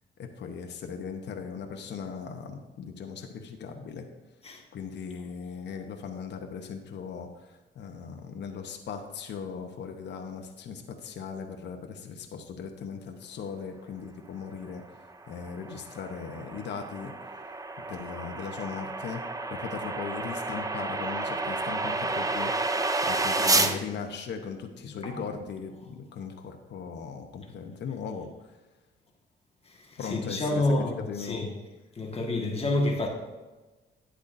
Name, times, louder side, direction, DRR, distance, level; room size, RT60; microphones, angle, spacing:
voice 1, 0.2-4.1 4.7-14.8 15.3-17.1 17.9-19.2 19.5-22.5 23.0-28.3 30.0-30.7 31.1-31.5, left 6 dB, 60° left, 4 dB, 1.0 m, -38 dB
sound 1, 15.1-23.8, right 2 dB, 15° right, 0.6 m, -30 dB
voice 2, 24.9-25.2 30.0-31.5 32.0-33.1, left 2 dB, 30° left, 0 dB, 1.7 m, -29 dB
10.5 x 8.1 x 2.7 m, 1.2 s
cardioid pair, 90°, 20 cm